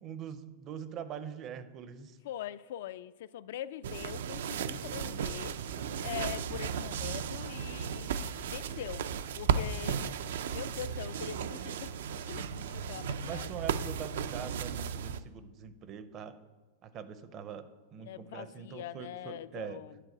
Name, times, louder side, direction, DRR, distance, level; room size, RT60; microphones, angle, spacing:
voice 1, 0.0-2.2 13.2-16.4 16.8-19.8, right 8 dB, 25° right, 0.5 m, -43 dB
voice 2, 2.2-5.5 6.0-9.0 9.4-13.5 18.0-20.0, left 11 dB, 60° left, 0.3 m, -43 dB
sound 1, 3.8-15.2, right 7 dB, 75° right, 0.5 m, -35 dB
9.8 x 4.7 x 7.8 m
supercardioid pair, 170°, 0 cm